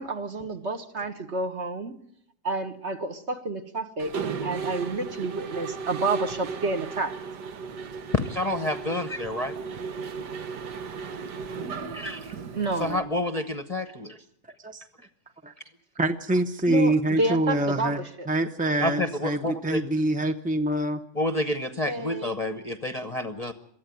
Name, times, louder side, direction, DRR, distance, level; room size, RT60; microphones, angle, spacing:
voice 1, 0.0-1.9 2.4-4.2 4.4-7.2 12.5-13.1 16.7-16.9 17.2-18.3 21.8-22.3, right 2 dB, 45° right, 1.5 m, -29 dB
Mechanisms, 4.0-13.0, right 5 dB, 85° right, 1.8 m, -35 dB
voice 2, 8.3-9.5 11.9-12.4 12.8-14.2 18.8-19.8 21.2-23.5, left 1 dB, 30° left, 0.9 m, -29 dB
voice 3, 16.0-18.0 18.3-21.0, right 1 dB, 10° right, 0.4 m, -25 dB
23.5 x 14.0 x 9.3 m
omnidirectional pair, 1.8 m